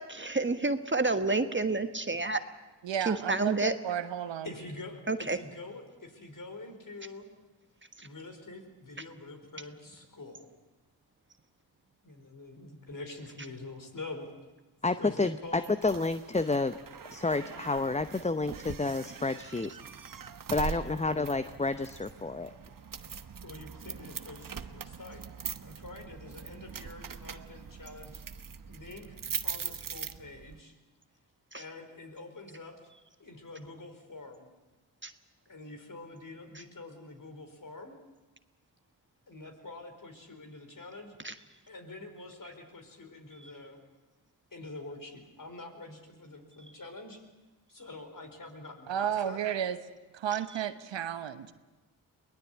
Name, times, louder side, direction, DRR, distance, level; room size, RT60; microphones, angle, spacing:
voice 1, 0.2-2.4 3.1-3.7 5.1-5.4 35.0-35.1 41.2-41.3, right 3 dB, 25° right, 9 dB, 1.4 m, -29 dB
voice 2, 2.8-4.5 48.9-49.8 50.1-51.5, right 9 dB, 70° right, 11 dB, 1.2 m, -32 dB
voice 3, 4.4-7.3 8.0-10.5 12.0-14.3 15.0-15.7 20.5-21.0 23.4-25.2 25.6-28.2 28.6-30.8 31.5-32.8 33.2-34.5 35.5-37.9 39.3-41.1 41.7-43.8 44.5-47.2 47.7-49.4, left 2 dB, 45° left, 5 dB, 4.7 m, -46 dB
voice 4, 14.8-16.8 17.1-19.7 20.5-22.5, left 3 dB, 15° left, 11 dB, 0.8 m, -30 dB
sound 1, 15.6-30.6, right 7 dB, 45° right, 1.2 m, -42 dB
22.5 x 18.5 x 8.5 m, 1.2 s
supercardioid pair, 40°, 46 cm